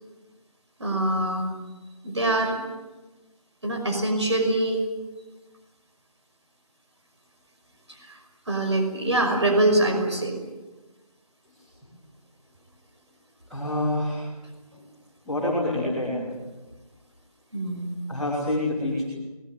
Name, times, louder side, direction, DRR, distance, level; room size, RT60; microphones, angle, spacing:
voice 1, 0.8-1.5 2.0-2.6 3.6-4.9 7.9-8.2 8.5-10.3 14.7-14.8 17.5-17.9, right 1 dB, 45° right, 3 dB, 5.7 m, -24 dB
voice 2, 13.5-14.2 15.3-16.3 18.1-19.1, left 1 dB, ahead, -15 dB, 2.6 m, -27 dB
23.0 x 20.5 x 9.0 m, 1.2 s
figure-of-eight pair, 175°, 20 cm